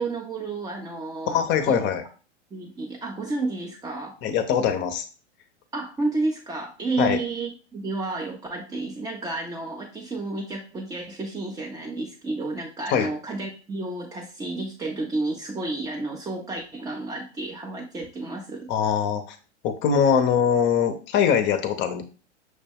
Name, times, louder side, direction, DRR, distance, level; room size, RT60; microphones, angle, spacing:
voice 1, 0.0-1.4 1.7-1.9 2.5-4.2 5.7-18.7, right 2 dB, 10° right, 0 dB, 0.4 m, -31 dB
voice 2, 1.3-2.0 4.2-5.0 7.0-7.2 12.9-13.1 18.7-19.4 19.6-22.0, left 7 dB, 30° left, 8 dB, 0.6 m, -22 dB
6.2 x 2.2 x 3.4 m, 0.35 s
hypercardioid pair, 105°, 35 cm